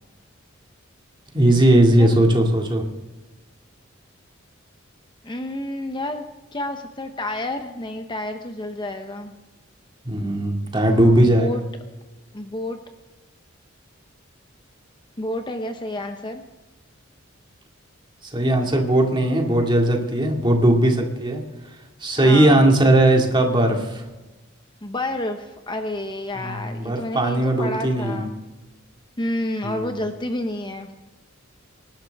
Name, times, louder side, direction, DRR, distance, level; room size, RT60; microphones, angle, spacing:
voice 1, 1.3-2.8 10.1-11.6 18.3-21.4 22.0-24.0 26.4-28.3 29.6-29.9, right 1 dB, 25° right, 1 dB, 2.2 m, -18 dB
voice 2, 5.2-6.2 6.5-9.3 10.8-11.6 12.3-12.8 15.2-16.4 22.2-22.7 24.8-28.3 29.2-31.0, left 1 dB, 25° left, 6 dB, 0.8 m, -30 dB
25.5 x 11.5 x 3.5 m, 1.1 s
head